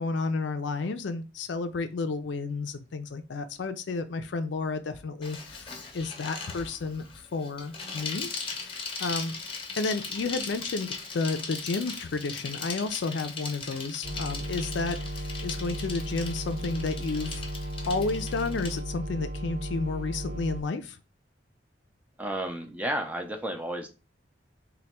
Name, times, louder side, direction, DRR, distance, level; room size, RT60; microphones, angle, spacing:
voice 1, 0.0-7.0 7.3-8.3 8.6-9.3 9.8-17.5 17.9-21.0, left 3 dB, 70° left, 0.4 m, -31 dB
Bicycle, 5.2-18.8, left 4 dB, 30° left, 0.7 m, -39 dB
sound 1, 14.0-20.6, equal, 75° right, 1.0 m, -35 dB
voice 2, 22.2-23.9, right 1 dB, 10° right, 0.5 m, -32 dB
3.3 x 2.2 x 4.1 m
head